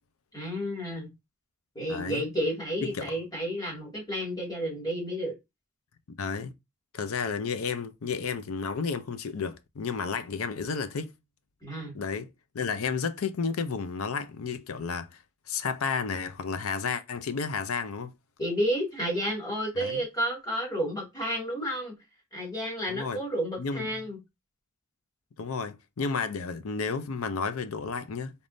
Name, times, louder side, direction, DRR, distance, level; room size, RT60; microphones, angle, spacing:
voice 1, 0.3-1.1 1.8-5.3 11.6-11.9 18.4-21.9 22.3-24.2, equal, 20° left, 2.1 m, -31 dB
voice 2, 1.9-2.2 2.8-3.1 6.2-6.5 6.9-11.1 11.9-12.3 12.5-15.1 15.5-18.1 19.8-20.0 22.9-23.2 23.6-24.0 25.4-28.3, left 5 dB, 90° left, 0.6 m, -32 dB
4.1 x 3.5 x 2.6 m
head